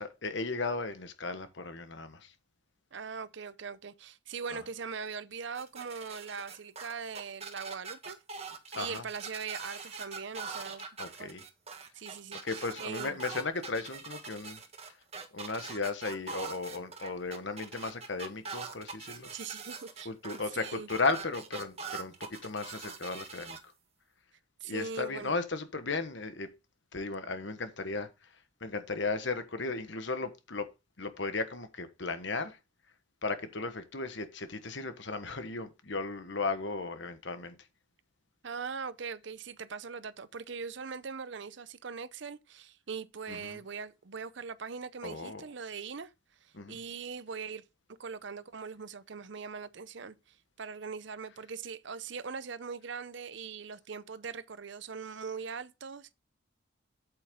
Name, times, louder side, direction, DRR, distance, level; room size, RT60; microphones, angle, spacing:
voice 1, 0.0-2.3 4.5-4.6 8.7-9.0 11.0-11.4 12.3-14.6 15.3-19.3 20.0-23.6 24.6-26.5 26.9-28.3 28.6-30.7 31.0-32.6 33.2-37.5 43.3-43.6 45.0-45.5 46.5-46.8, left 3 dB, 60° left, 1.3 m, -35 dB
voice 2, 2.9-8.2 8.7-10.9 11.2-11.4 11.9-12.4 12.8-13.2 19.3-20.1 20.6-20.9 24.6-25.3 38.4-46.1 46.4-47.6 48.0-56.1, right 5 dB, 60° right, 0.6 m, -41 dB
sound 1, 5.6-23.6, right 5 dB, 30° right, 1.5 m, -43 dB
8.4 x 7.9 x 3.7 m
head